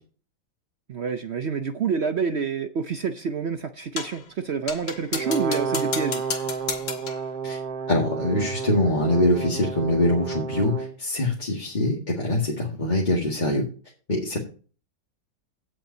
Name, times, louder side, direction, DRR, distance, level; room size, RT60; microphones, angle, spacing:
voice 1, 0.9-6.2, right 5 dB, 75° right, 8 dB, 0.6 m, -28 dB
sound 1, 4.0-4.2 4.7-7.3, left 6 dB, 75° left, 2.2 m, -33 dB
Brass instrument, 5.1-10.9, right 6 dB, 60° right, 1.4 m, -31 dB
voice 2, 7.9-13.6 14.1-14.4, left 1 dB, 25° left, -2 dB, 1.9 m, -23 dB
16.5 x 7.4 x 2.7 m, 0.38 s
omnidirectional pair, 2.0 m